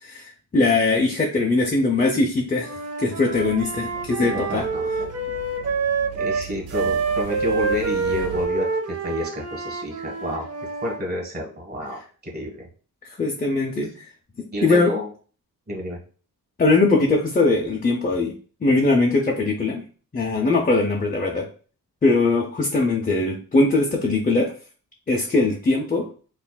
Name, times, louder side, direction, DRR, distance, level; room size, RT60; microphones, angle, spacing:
voice 1, 0.0-4.6 13.0-14.1 14.6-14.9 16.6-18.4 18.6-19.8 20.1-21.5 22.0-24.5 25.1-26.1, left 3 dB, 20° left, 0 dB, 0.5 m, -21 dB
Wind instrument woodwind instrument, 2.6-6.5 6.7-11.0, right 4 dB, 40° right, 0.7 m, -27 dB
sound 1, 3.3-8.5, right 6 dB, 75° right, 0.9 m, -39 dB
voice 2, 4.2-4.9 6.2-10.5 10.8-12.7 14.5-15.1 15.7-16.0, left 1 dB, 25° right, -1 dB, 1.3 m, -30 dB
5.7 x 2.5 x 2.2 m, 0.40 s
wide cardioid pair, 125°, 38 cm